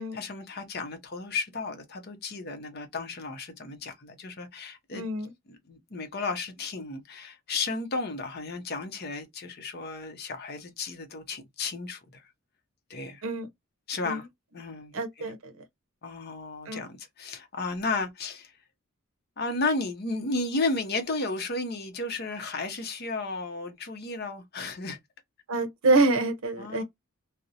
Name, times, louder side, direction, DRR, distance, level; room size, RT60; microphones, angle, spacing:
voice 1, 0.0-5.0 5.5-12.2 12.9-13.2 13.9-14.3 14.5-14.9 15.2-15.3 16.0-18.5 19.4-25.0 26.6-26.8, left 3 dB, 50° left, 0.7 m, -33 dB
voice 2, 4.9-5.3 13.2-13.5 14.0-14.2 14.9-15.5 16.7-16.8 25.5-26.8, right 3 dB, 75° right, 0.6 m, -26 dB
2.5 x 2.0 x 2.7 m
head